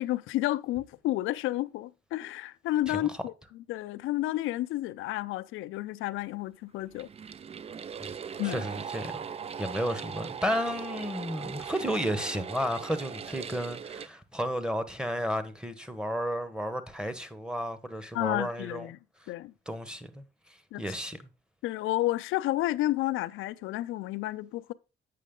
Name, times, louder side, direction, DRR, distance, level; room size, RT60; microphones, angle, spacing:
voice 1, 0.0-3.3 3.7-7.1 8.4-8.7 18.1-19.0 19.3-19.5 20.7-20.8 21.6-24.7, left 16 dB, 85° left, 0.5 m, -31 dB
voice 2, 2.9-3.2 8.0-9.3 9.6-18.9 19.2-19.3 19.7-21.2, equal, 5° right, 1.0 m, -33 dB
sound 1, 6.9-14.1, right 7 dB, 30° right, 0.4 m, -39 dB
8.4 x 6.2 x 3.7 m
cardioid pair, 90°, 20 cm